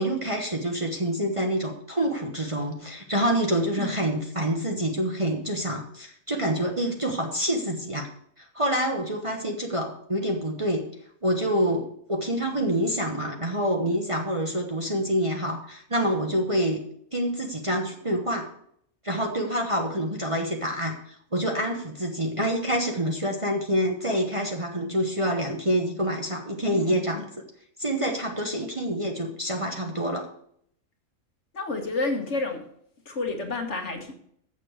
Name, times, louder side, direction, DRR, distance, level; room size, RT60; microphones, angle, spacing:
voice 1, 0.0-8.1 8.4-10.9 11.2-16.8 17.1-18.5 19.0-27.3 27.8-30.3, equal, 25° right, 1 dB, 1.1 m, -27 dB
voice 2, 26.7-27.2 31.5-32.7 33.0-34.1, left 3 dB, 55° left, 4 dB, 1.7 m, -30 dB
7.3 x 6.8 x 7.7 m, 0.67 s
omnidirectional pair, 1.5 m